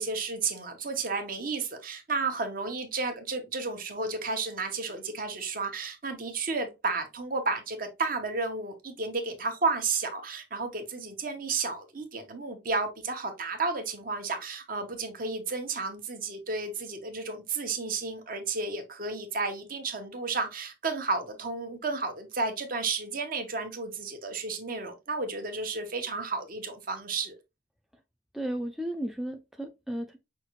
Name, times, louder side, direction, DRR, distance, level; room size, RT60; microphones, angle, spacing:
voice 1, 0.0-27.4, right 4 dB, 50° right, 0.9 m, -32 dB
voice 2, 28.3-30.2, right 1 dB, ahead, 0.3 m, -34 dB
5.6 x 2.4 x 3.0 m
head